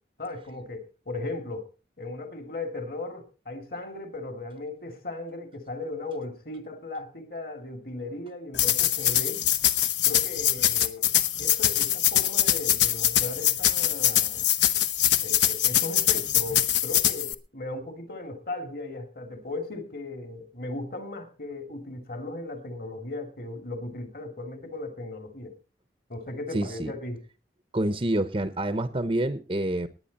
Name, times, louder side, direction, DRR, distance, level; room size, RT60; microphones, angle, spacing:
voice 1, 0.2-1.7 2.0-9.4 10.0-11.1 11.4-14.5 15.2-25.6 26.1-27.2, left 2 dB, 50° left, 6 dB, 2.6 m, -37 dB
sound 1, 8.5-17.3, left 11 dB, 75° left, 1.1 m, -23 dB
voice 2, 26.5-26.9 27.7-29.9, right 1 dB, 30° right, 11 dB, 0.8 m, -27 dB
19.0 x 9.8 x 4.2 m, 0.33 s
head